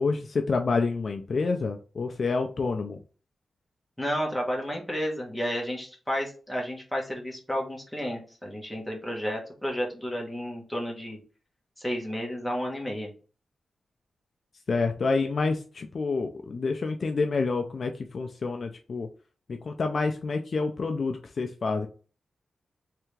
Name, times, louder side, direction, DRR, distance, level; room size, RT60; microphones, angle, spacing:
voice 1, 0.0-3.0 14.7-19.1 19.5-21.9, left 4 dB, 45° left, 5 dB, 0.4 m, -28 dB
voice 2, 4.0-11.2 11.8-13.1, equal, ahead, -2 dB, 1.2 m, -32 dB
3.5 x 3.3 x 3.2 m, 0.37 s
wide cardioid pair, 170°, 0 cm